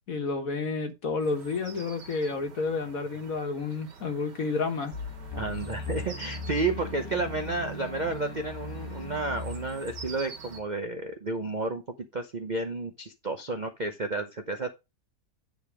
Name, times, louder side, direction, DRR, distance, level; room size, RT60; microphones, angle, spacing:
voice 1, 0.1-4.9, left 4 dB, 55° left, 1.7 m, -30 dB
sound 1, 1.2-10.6, right 5 dB, 80° right, 2.1 m, -48 dB
sound 2, 4.9-10.6, left 3 dB, 15° left, 1.2 m, -38 dB
voice 2, 5.4-14.7, right 3 dB, 45° right, 0.6 m, -31 dB
9.7 x 3.5 x 4.8 m
omnidirectional pair, 1.8 m